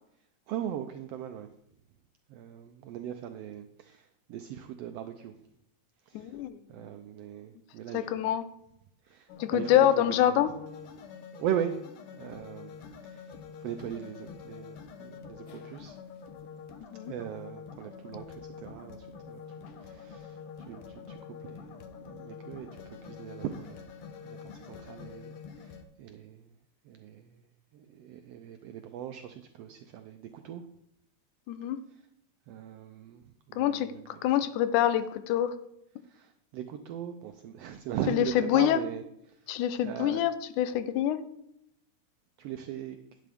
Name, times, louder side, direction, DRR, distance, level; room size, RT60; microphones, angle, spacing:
voice 1, 0.5-1.5 2.3-5.4 6.1-6.4 6.7-8.3 9.0-10.4 11.3-11.7 12.1-12.7 13.0-13.3 13.6-16.0 17.1-23.9 24.2-26.5 26.8-27.4 27.7-30.7 32.5-34.1 36.1-39.5 39.8-40.2 42.4-43.1, right 10 dB, 85° right, 8 dB, 1.4 m, -39 dB
voice 2, 6.1-6.6 7.9-8.4 9.4-10.5 16.8-17.1 31.5-31.8 33.6-35.5 38.1-38.8 39.5-41.2, left 11 dB, 90° left, 13 dB, 2.1 m, -26 dB
sound 1, 9.3-25.8, left 6 dB, 65° left, 1.4 m, -46 dB
11.5 x 8.4 x 3.5 m, 0.79 s
omnidirectional pair, 3.4 m